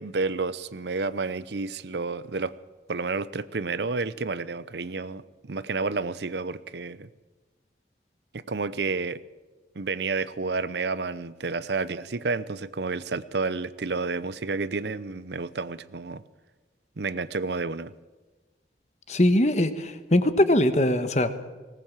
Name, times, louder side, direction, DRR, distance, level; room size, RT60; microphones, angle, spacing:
voice 1, 0.0-2.5 2.9-7.1 8.3-9.2 9.8-16.2 17.0-17.9, right 4 dB, 75° right, 0.7 m, -30 dB
voice 2, 19.1-21.3, left 1 dB, 40° left, 1.3 m, -21 dB
19.5 x 18.0 x 7.4 m
head